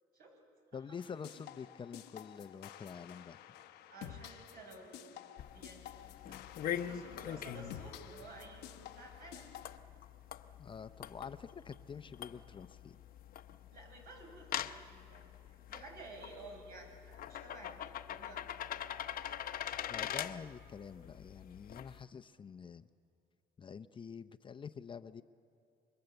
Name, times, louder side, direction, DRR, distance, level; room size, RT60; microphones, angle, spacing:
voice 1, 0.7-3.4 10.6-13.0 19.9-22.9 23.6-25.2, left 6 dB, 30° left, 11 dB, 0.6 m, -47 dB
sound 1, 1.0-9.8, left 12 dB, 90° left, 0.9 m, -52 dB
voice 2, 3.9-5.2 5.5-5.9 6.2-9.5 13.7-15.2 15.7-18.5, right 2 dB, 70° right, 1 dB, 7.8 m, -53 dB
sound 2, 5.4-22.0, left 10 dB, 60° left, 0.9 m, -44 dB
28.5 x 24.0 x 8.0 m, 2.5 s
cardioid pair, 110°, 17 cm